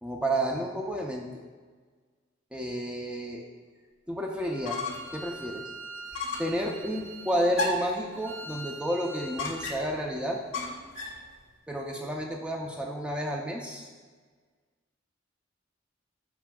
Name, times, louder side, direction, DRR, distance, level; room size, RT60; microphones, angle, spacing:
voice 1, 0.0-1.3 2.5-3.4 4.1-4.8 5.1-5.6 6.4-10.4 11.7-13.9, equal, 5° right, 0 dB, 0.6 m, -31 dB
Bowed string instrument, 4.3-9.7, right 3 dB, 80° right, 1.6 m, -44 dB
sound 1, 4.4-5.2 5.5-5.6 6.1-6.6 7.5-8.0 9.4-10.0 10.5-11.2, left 2 dB, 85° left, 1.2 m, -33 dB
13.5 x 4.7 x 2.3 m, 1.5 s
head